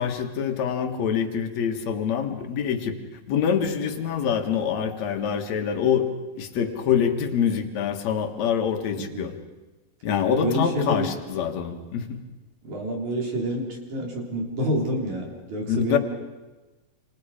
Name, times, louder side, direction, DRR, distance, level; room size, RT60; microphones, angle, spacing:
voice 1, 0.0-2.9 3.3-6.1 6.3-9.3 10.0-12.2 15.7-16.0, left 7 dB, 60° left, 5 dB, 2.8 m, -25 dB
voice 2, 9.0-9.3 10.4-11.2 12.6-16.0, right 1 dB, 65° right, 0 dB, 5.3 m, -28 dB
28.0 x 27.0 x 5.1 m, 1.1 s
omnidirectional pair, 3.6 m